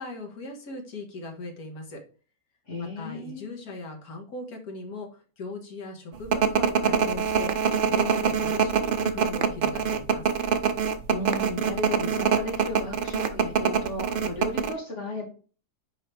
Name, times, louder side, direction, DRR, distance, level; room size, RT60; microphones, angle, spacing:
voice 1, 0.0-2.0 2.8-10.3, left 2 dB, 65° left, 1 dB, 2.0 m, -39 dB
voice 2, 2.7-3.5 11.1-15.3, left 1 dB, 45° left, -2 dB, 2.8 m, -35 dB
sound 1, 6.3-14.7, right 6 dB, 75° right, 0.4 m, -24 dB
5.8 x 4.8 x 3.3 m, 0.38 s
omnidirectional pair, 1.7 m